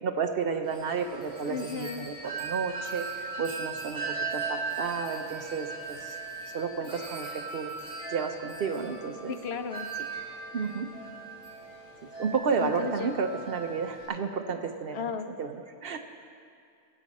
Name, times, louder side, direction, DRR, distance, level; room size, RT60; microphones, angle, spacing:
voice 1, 0.0-3.1 3.4-6.1 6.5-7.7 8.1-9.4 10.5-10.9 12.2-15.0 15.4-16.0, right 5 dB, 55° right, 6 dB, 0.8 m, -32 dB
Wind chime, 0.6-14.1, right 4 dB, 5° right, 3.5 m, -38 dB
voice 2, 1.5-2.1 9.3-9.9 12.6-13.2 14.9-15.3, left 6 dB, 65° left, 8 dB, 0.8 m, -34 dB
19.5 x 8.3 x 4.2 m, 2.4 s
omnidirectional pair, 1.3 m